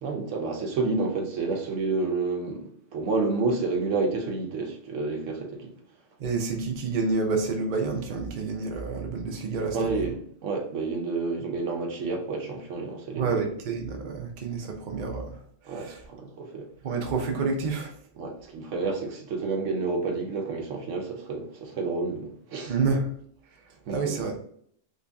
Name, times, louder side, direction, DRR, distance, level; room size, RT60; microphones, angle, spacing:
voice 1, 0.0-5.7 9.7-13.4 15.7-16.7 18.2-22.7 23.9-24.3, right 3 dB, 80° right, 1.1 m, -30 dB
voice 2, 6.2-9.9 13.2-15.4 15.6-16.0 16.8-17.9 22.7-23.1 23.9-24.4, right 4 dB, 50° right, 0.7 m, -29 dB
3.1 x 2.7 x 3.4 m
omnidirectional pair, 1.3 m